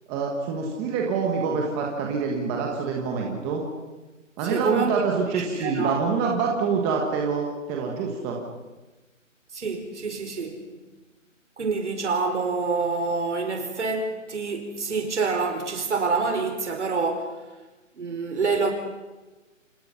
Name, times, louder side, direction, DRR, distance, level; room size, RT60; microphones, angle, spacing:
voice 1, 0.1-3.6 4.4-8.4, right 5 dB, 10° right, 0 dB, 1.3 m, -26 dB
voice 2, 4.4-6.0 9.5-10.8 11.6-17.3 18.0-18.7, right 4 dB, 60° right, 3 dB, 5.0 m, -27 dB
29.5 x 27.0 x 5.7 m, 1.2 s
hypercardioid pair, 170°, 39 cm